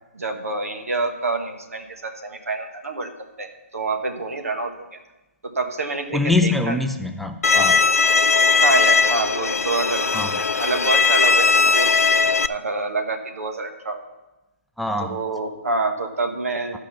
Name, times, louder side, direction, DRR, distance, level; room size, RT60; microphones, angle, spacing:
voice 1, 0.1-3.1 3.4-4.9 5.4-6.8 8.6-11.9 12.4-14.0 15.0-16.8, right 3 dB, 80° right, 5 dB, 1.3 m, -27 dB
voice 2, 6.1-7.8 10.1-10.3 14.8-15.2, left 3 dB, ahead, 5 dB, 0.3 m, -23 dB
Bowed string instrument, 7.4-12.5, left 4 dB, 90° left, 0.4 m, -18 dB
12.5 x 5.2 x 5.8 m, 1.0 s
figure-of-eight pair, 140°, 8 cm